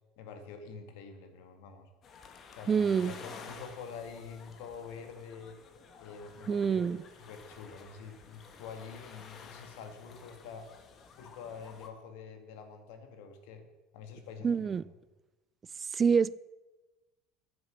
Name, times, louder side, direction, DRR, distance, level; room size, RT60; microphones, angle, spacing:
voice 1, 0.2-1.9 2.5-5.6 6.0-6.9 7.3-10.7 11.2-13.7 13.9-14.9, left 5 dB, 75° left, 2.0 m, -46 dB
sound 1, 2.0-11.9, left 5 dB, 45° left, 1.8 m, -52 dB
voice 2, 2.7-3.1 6.5-7.0 14.4-14.9 15.8-16.3, right 6 dB, 30° right, 0.4 m, -27 dB
10.0 x 9.7 x 7.1 m
supercardioid pair, 95°, 0 cm